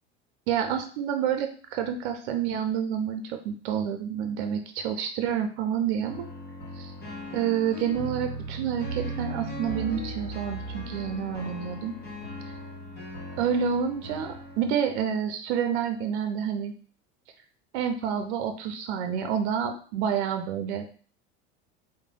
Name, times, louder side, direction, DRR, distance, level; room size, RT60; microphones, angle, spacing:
voice 1, 0.5-6.3 6.8-6.9 7.3-11.9 13.4-16.7 17.7-20.8, right 8 dB, 70° right, 6 dB, 0.6 m, -28 dB
sound 1, 6.0-14.6, right 1 dB, 30° left, 1.4 m, -37 dB
3.2 x 2.2 x 3.7 m, 0.42 s
hypercardioid pair, 85°, 34 cm